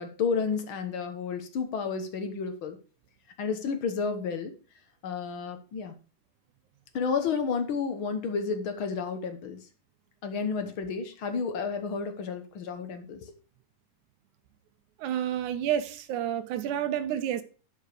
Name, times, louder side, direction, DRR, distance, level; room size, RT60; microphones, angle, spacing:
voice 1, 0.0-2.8 3.4-4.5 5.0-5.9 6.9-9.6 10.2-13.3, left 5 dB, 60° left, 1.4 m, -31 dB
voice 2, 15.0-17.4, right 10 dB, 80° right, 2.1 m, -29 dB
11.0 x 5.1 x 4.9 m
omnidirectional pair, 3.5 m